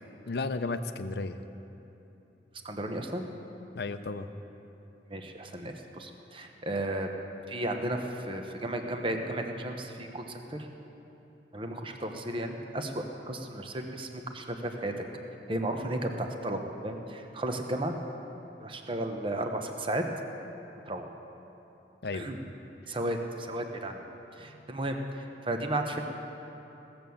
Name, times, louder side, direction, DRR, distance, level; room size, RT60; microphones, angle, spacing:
voice 1, 0.3-1.4 3.7-4.3 22.0-22.3 24.5-24.6, left 3 dB, 60° left, 10 dB, 0.6 m, -34 dB
voice 2, 2.6-3.3 5.1-7.1 7.5-10.7 11.5-15.0 15.5-17.9 18.6-20.0 20.9-21.1 22.1-22.4 22.9-24.1 24.3-26.0, right 1 dB, 30° right, 4 dB, 0.9 m, -34 dB
16.5 x 7.8 x 7.0 m, 3.0 s
head